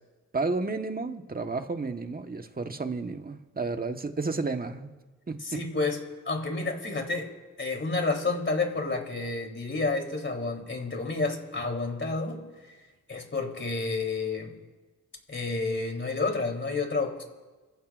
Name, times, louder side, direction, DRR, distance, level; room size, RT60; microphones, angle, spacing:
voice 1, 0.3-4.9 5.3-5.6, right 3 dB, 25° right, 6 dB, 1.4 m, -32 dB
voice 2, 5.4-6.0 6.3-7.3 7.6-12.4 13.1-14.5 15.3-17.2, left 3 dB, 35° left, 1 dB, 3.6 m, -30 dB
30.0 x 15.5 x 2.6 m, 1.3 s
cardioid pair, 65°, 33 cm